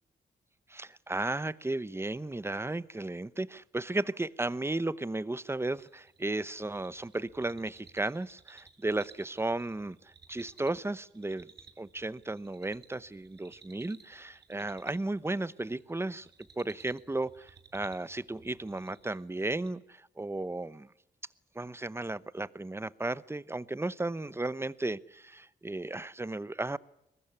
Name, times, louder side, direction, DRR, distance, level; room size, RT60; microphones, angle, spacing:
voice 1, 0.7-11.5 11.8-16.3 16.6-20.9 21.5-26.8, right 2 dB, 15° right, 18 dB, 0.8 m, -34 dB
sound 1, 5.8-19.7, right 5 dB, 65° right, 2.8 m, -59 dB
22.5 x 19.5 x 9.6 m, 0.84 s
cardioid pair, 90°, 19 cm